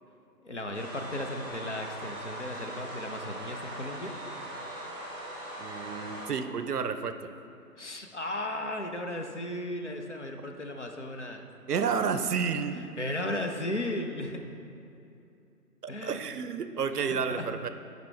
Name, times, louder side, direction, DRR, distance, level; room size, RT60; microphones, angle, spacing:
voice 1, 0.4-4.2 7.8-11.5 13.0-14.4 15.9-16.2 17.0-17.5, left 1 dB, 50° left, 4 dB, 0.5 m, -35 dB
sound 1, 0.7-6.3, right 1 dB, 10° left, 1.1 m, -40 dB
voice 2, 5.6-7.3 11.7-12.8 15.8-17.7, right 6 dB, 75° right, 10 dB, 0.6 m, -31 dB
9.3 x 5.2 x 3.3 m, 2.7 s
figure-of-eight pair, 160°, 47 cm